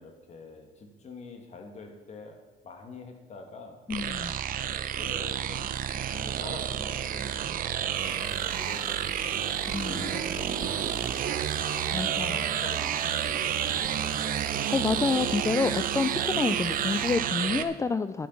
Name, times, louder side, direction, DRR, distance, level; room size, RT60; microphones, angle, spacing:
voice 1, 0.0-2.4 2.6-3.8 4.7-9.6 9.9-11.8 12.1-14.1, left 3 dB, 40° left, 4 dB, 2.5 m, -45 dB
voice 2, 3.9-4.4 9.7-10.0 11.9-12.3 14.5-18.3, left 4 dB, 15° left, 12 dB, 0.4 m, -28 dB
sound 1, 3.9-17.6, right 10 dB, 55° right, 0.8 m, -30 dB
sound 2, 7.9-17.2, right 2 dB, 20° right, 2.3 m, -48 dB
11.5 x 9.4 x 5.9 m, 1.1 s
cardioid pair, 110°, 17 cm